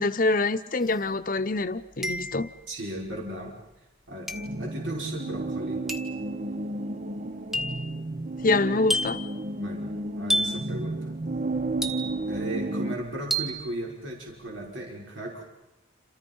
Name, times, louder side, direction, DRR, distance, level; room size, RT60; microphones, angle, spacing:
voice 1, 0.0-2.5 8.4-9.2, left 3 dB, 45° left, 0.9 m, -25 dB
sound 1, 0.8-0.9 2.0-2.6 4.3-4.6 5.9-6.2 7.5-7.9 8.9-9.3 10.3-10.7 11.8-12.3 13.3-13.6, equal, ahead, 1.3 m, -29 dB
voice 2, 2.7-3.5 4.1-5.8 9.5-11.2 12.3-15.4, right 1 dB, 75° right, 5.8 m, -36 dB
sound 2, 4.3-13.0, right 2 dB, 35° right, 0.8 m, -32 dB
28.0 x 28.0 x 5.5 m
head